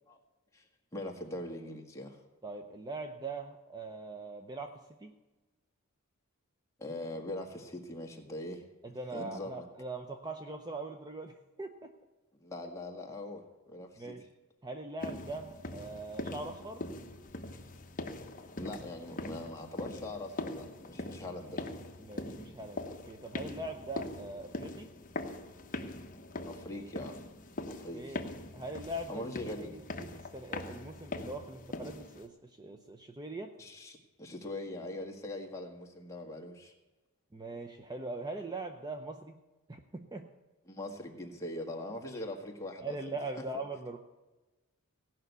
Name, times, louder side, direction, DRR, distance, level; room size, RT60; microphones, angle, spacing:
voice 1, 0.9-2.2 6.8-8.6 9.1-9.7 12.4-14.2 18.6-21.7 26.4-27.2 27.7-28.2 29.1-29.8 33.6-36.7 40.7-43.2, left 1 dB, 15° left, 0 dB, 1.7 m, -42 dB
voice 2, 2.4-5.2 8.8-11.9 14.0-14.2 14.6-16.9 22.0-24.9 27.9-28.2 28.5-29.3 29.6-33.5 37.3-39.4 39.7-40.3 42.8-44.0, right 2 dB, 20° right, 5 dB, 0.7 m, -41 dB
sound 1, 15.0-32.3, left 2 dB, 35° left, 1.0 m, -42 dB
17.0 x 5.9 x 8.1 m, 1.1 s
head